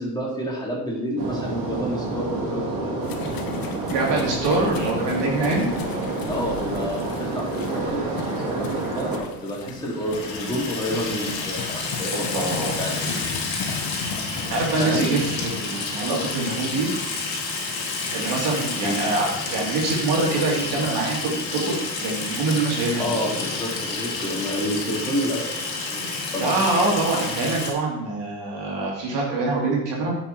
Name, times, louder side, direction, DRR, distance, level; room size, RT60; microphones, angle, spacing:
voice 1, 0.0-3.0 6.3-8.1 8.4-13.2 14.8-15.1 18.8-19.0 23.0-26.5, equal, 10° left, -4 dB, 3.5 m, -29 dB
sound 1, 1.2-9.2, right 2 dB, 80° right, 2.8 m, -28 dB
sound 2, 3.0-15.6, left 6 dB, 45° left, 1.2 m, -36 dB
voice 2, 3.8-5.6 12.3-12.8 14.5-17.1 18.1-23.2 26.4-30.2, right 3 dB, 55° right, -2 dB, 3.2 m, -24 dB
Water tap faucet / Sink (filling or washing), 9.8-27.7, left 3 dB, 90° left, 1.9 m, -30 dB
9.5 x 6.1 x 4.4 m, 0.92 s
hypercardioid pair, 65°, 49 cm